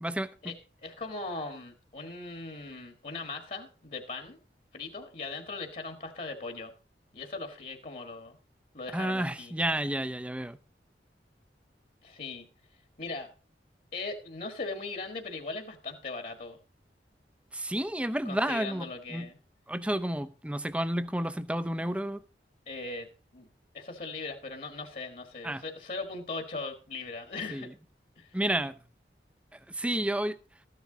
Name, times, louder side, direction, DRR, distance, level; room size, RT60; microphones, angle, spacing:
voice 1, 0.0-0.3 8.9-10.6 17.5-19.3 19.7-22.2 25.4-25.6 27.5-27.6 28.3-28.7 29.7-30.4, right 1 dB, 5° right, 0.6 m, -31 dB
voice 2, 0.8-4.4 4.7-6.7 7.1-8.4 8.7-9.6 12.0-12.5 13.0-13.3 13.9-16.6 18.2-19.4 22.7-23.5 23.7-27.7 28.2-28.3, left 3 dB, 45° left, 1.6 m, -39 dB
14.0 x 10.5 x 3.9 m
head